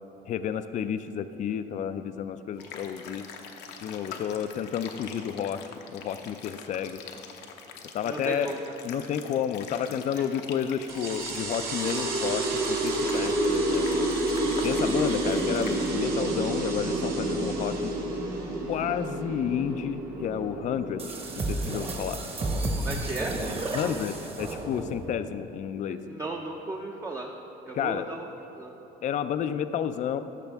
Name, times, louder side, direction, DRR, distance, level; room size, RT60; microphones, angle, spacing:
voice 1, 0.3-3.3 3.8-5.6 5.9-7.0 7.9-8.5 8.8-14.1 14.6-17.9 18.7-21.0 21.5-22.2 23.7-26.0 27.7-28.1 29.0-30.2, left 8 dB, 45° left, 11 dB, 0.4 m, -31 dB
sound 1, 2.6-15.9, left 6 dB, 80° left, 0.8 m, -44 dB
voice 2, 8.0-8.6 22.8-23.4 23.7-24.0 26.1-27.3 27.7-28.3 28.5-28.7, right 2 dB, 15° right, 0 dB, 0.6 m, -35 dB
sound 2, 10.9-21.9, right 2 dB, 65° right, 1.7 m, -29 dB
sound 3, 21.0-25.2, right 2 dB, 35° right, 1.2 m, -32 dB
14.0 x 6.0 x 3.5 m, 2.9 s
cardioid pair, 110°, 17 cm